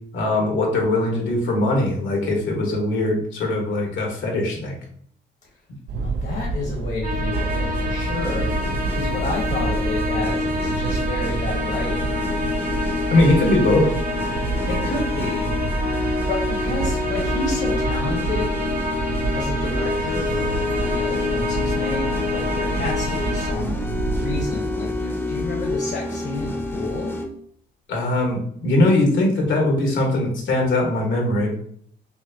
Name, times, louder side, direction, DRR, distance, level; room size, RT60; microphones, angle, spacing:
voice 1, 0.1-4.8 13.1-13.9 27.9-31.5, left 2 dB, 75° left, 0 dB, 1.4 m, -20 dB
sound 1, 5.9-24.5, right 3 dB, 60° right, 0.4 m, -28 dB
voice 2, 6.0-8.6 8.9-12.1 14.7-15.5 16.3-18.5 19.3-23.7 24.1-27.1, left 3 dB, 55° left, -1 dB, 1.2 m, -30 dB
sound 2, 7.0-23.5, left 2 dB, 45° right, 0.9 m, -29 dB
sound 3, 7.3-27.3, left 2 dB, 10° left, 0.7 m, -28 dB
5.9 x 2.1 x 2.7 m, 0.62 s
cardioid pair, 90°, 20 cm